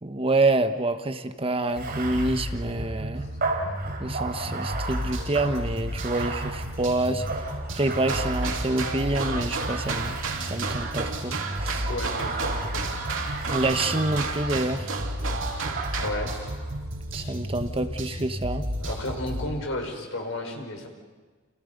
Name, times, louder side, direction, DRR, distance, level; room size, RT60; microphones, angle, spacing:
voice 1, 0.0-3.2 4.0-7.2 7.7-11.9 13.5-14.9 17.1-18.7, right 2 dB, 30° right, 8 dB, 1.2 m, -27 dB
Bathtub (filling or washing), 1.7-9.0 9.6-10.9 11.4-14.6 15.8-16.7, right 3 dB, 50° right, 3.5 m, -36 dB
sound 1, 1.8-19.5, equal, 75° right, 7.8 m, -33 dB
sound 2, 7.9-16.1, right 4 dB, 90° right, 2.8 m, -32 dB
voice 2, 11.9-13.2 16.0-16.3 18.8-20.9, left 1 dB, 75° left, 2 dB, 5.3 m, -33 dB
29.5 x 29.5 x 5.4 m, 1.4 s
head